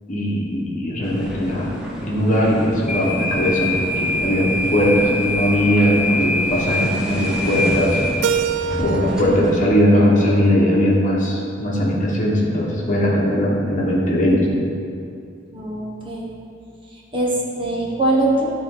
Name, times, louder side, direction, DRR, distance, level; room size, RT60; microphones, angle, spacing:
voice 1, 0.1-1.7 2.0-8.0 8.8-14.6, equal, 40° left, -4 dB, 1.4 m, -19 dB
sound 1, 1.0-9.6, left 1 dB, 5° right, 1.0 m, -25 dB
Keyboard (musical), 8.2-11.1, right 7 dB, 70° right, 0.3 m, -27 dB
voice 2, 15.5-16.3 16.9-18.5, right 2 dB, 25° right, -4 dB, 1.1 m, -22 dB
12.0 x 4.1 x 4.0 m, 2.5 s
head